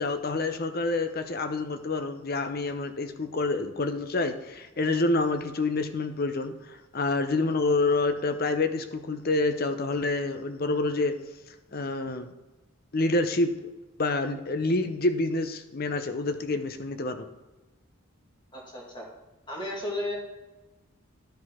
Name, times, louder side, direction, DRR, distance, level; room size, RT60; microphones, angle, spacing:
voice 1, 0.0-11.1 11.7-12.3 12.9-13.7 14.0-17.2, left 2 dB, 45° left, 9 dB, 0.6 m, -27 dB
voice 2, 18.5-19.1 19.5-20.2, left 1 dB, 20° left, -2 dB, 1.9 m, -34 dB
11.5 x 5.1 x 3.6 m, 1.1 s
head